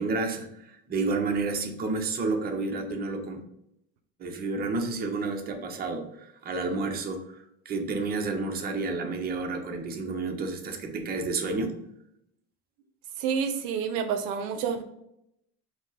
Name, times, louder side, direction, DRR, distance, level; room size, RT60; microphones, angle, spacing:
voice 1, 0.0-3.4 4.2-11.7, right 3 dB, 30° right, 3 dB, 0.7 m, -30 dB
voice 2, 13.2-14.8, right 7 dB, 75° right, 7 dB, 0.5 m, -28 dB
4.8 x 2.0 x 3.9 m, 0.80 s
supercardioid pair, 120°, 31 cm